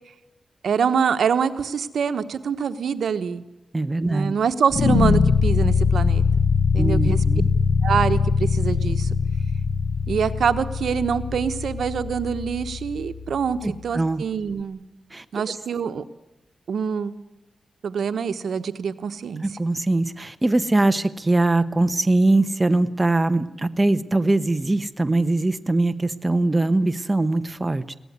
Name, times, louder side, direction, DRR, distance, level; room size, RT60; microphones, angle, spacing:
voice 1, 0.6-3.4 4.0-6.2 6.7-7.2 7.8-9.1 10.1-14.8 15.3-16.0 16.7-17.1 17.8-19.4, right 6 dB, 85° right, 10 dB, 1.2 m, -25 dB
voice 2, 3.7-4.3 6.8-7.5 13.6-14.2 15.1-15.2 19.4-27.9, right 2 dB, 20° right, 9 dB, 1.0 m, -22 dB
sound 1, 4.7-13.8, left 5 dB, 65° left, 1.0 m, -22 dB
22.5 x 17.5 x 9.5 m, 1.0 s
wide cardioid pair, 115°, 0 cm